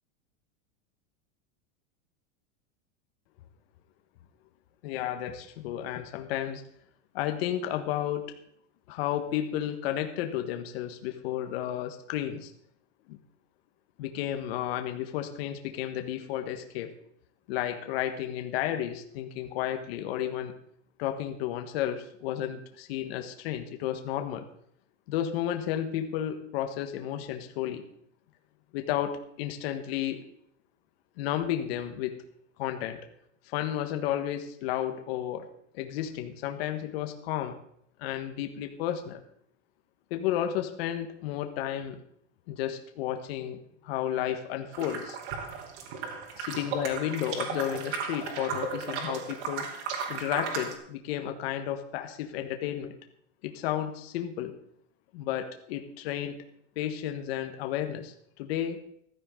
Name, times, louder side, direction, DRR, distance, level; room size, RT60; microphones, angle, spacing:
voice 1, 4.8-6.6 7.1-8.3 8.9-12.5 13.1-13.2 14.0-16.9 17.5-20.5 21.0-24.5 25.1-27.8 28.7-30.2 31.2-32.2 32.6-33.0 33.5-35.5 35.7-37.5 38.0-39.2 40.1-42.0 42.5-45.2 46.4-49.7 50.1-52.9 53.4-54.5 55.1-56.4 56.7-58.8, left 11 dB, 50° left, 6 dB, 1.6 m, -32 dB
sound 1, 44.7-50.7, right 5 dB, 60° right, 2.7 m, -35 dB
15.5 x 13.5 x 3.9 m, 0.69 s
supercardioid pair, 165°, 39 cm